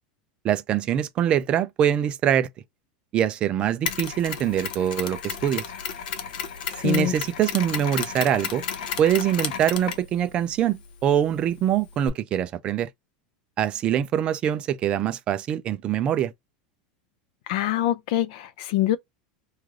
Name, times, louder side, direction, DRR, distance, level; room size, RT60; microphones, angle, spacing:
voice 1, 0.4-2.5 3.1-5.6 6.8-8.6 9.0-12.9 13.6-16.3, right 10 dB, 25° right, 0.3 m, -24 dB
Mechanisms, 3.9-12.1, left 7 dB, 85° left, 0.8 m, -33 dB
voice 2, 6.7-7.1 17.5-19.0, left 13 dB, 55° left, 0.4 m, -25 dB
3.2 x 2.3 x 3.6 m
supercardioid pair, 170°, 4 cm